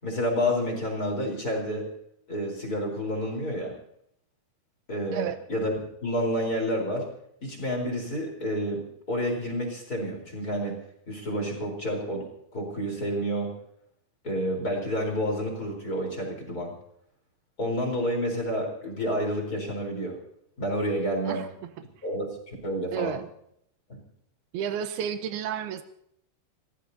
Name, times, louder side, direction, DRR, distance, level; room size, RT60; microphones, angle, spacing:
voice 1, 0.0-1.9 2.3-3.7 4.9-5.7 6.0-7.1 7.4-8.8 9.1-10.8 11.1-13.5 14.2-16.7 17.6-20.2 20.6-21.4 22.0-23.2, equal, 25° left, 1 dB, 4.2 m, -29 dB
voice 2, 21.3-21.9 22.9-23.3 24.5-25.8, right 8 dB, 85° right, 9 dB, 2.9 m, -32 dB
30.0 x 15.0 x 2.8 m, 0.71 s
omnidirectional pair, 4.4 m